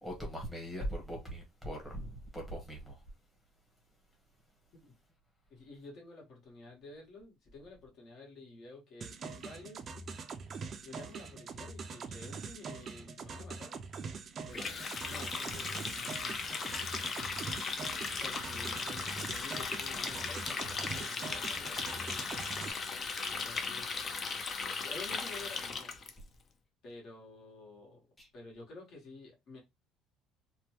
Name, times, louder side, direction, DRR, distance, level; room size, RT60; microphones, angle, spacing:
voice 1, 0.0-3.0 28.2-28.3, equal, 5° left, 1.0 m, -40 dB
voice 2, 5.5-9.9 10.8-14.1 14.5-14.6 15.1-16.4 18.2-22.6 23.3-23.9 24.8-26.0 26.8-28.1 28.3-29.6, left 3 dB, 55° left, 1.4 m, -51 dB
sound 1, 9.0-22.7, right 5 dB, 35° right, 0.4 m, -43 dB
Water tap faucet, 14.5-26.1, left 5 dB, 35° left, 0.5 m, -37 dB
2.9 x 2.2 x 2.9 m
cardioid pair, 140°, 0 cm